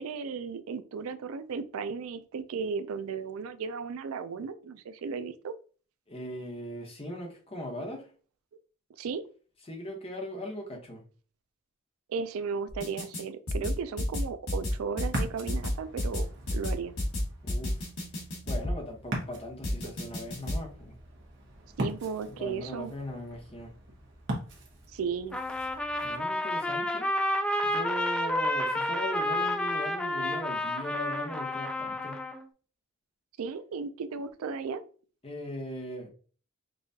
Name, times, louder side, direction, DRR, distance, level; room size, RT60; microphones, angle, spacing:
voice 1, 0.0-5.5 9.0-9.2 12.1-16.9 21.8-22.9 24.9-25.4 33.4-34.8, right 5 dB, 75° right, 11 dB, 0.4 m, -35 dB
voice 2, 6.1-8.1 9.7-11.0 17.4-17.9 18.4-20.9 22.3-23.7 26.0-27.1 27.6-32.2 35.2-36.1, equal, 25° left, 1 dB, 1.0 m, -39 dB
sound 1, 12.7-13.2 13.5-18.8 19.6-20.6, left 1 dB, 85° left, 1.5 m, -30 dB
Ocean, 15.0-26.2, right 1 dB, 55° right, 1.1 m, -41 dB
Trumpet, 25.3-32.4, left 1 dB, 5° left, 0.3 m, -30 dB
5.4 x 2.4 x 2.7 m, 0.40 s
head